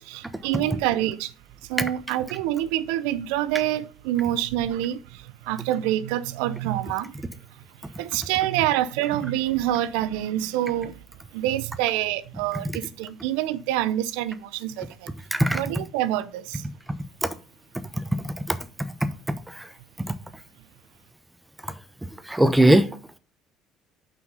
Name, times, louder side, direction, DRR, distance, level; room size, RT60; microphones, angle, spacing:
voice 1, 0.0-1.3 1.6-7.6 8.0-11.0 11.3-15.1 15.5-16.7, right 13 dB, 75° right, 0.5 m, -27 dB
voice 2, 15.3-15.6 17.2-17.3 18.2-18.6 19.0-19.1 19.6-19.7 20.1-20.2 22.3-22.9, right 1 dB, 10° right, 0.8 m, -20 dB
5.8 x 5.7 x 5.3 m
hypercardioid pair, 60°, 0 cm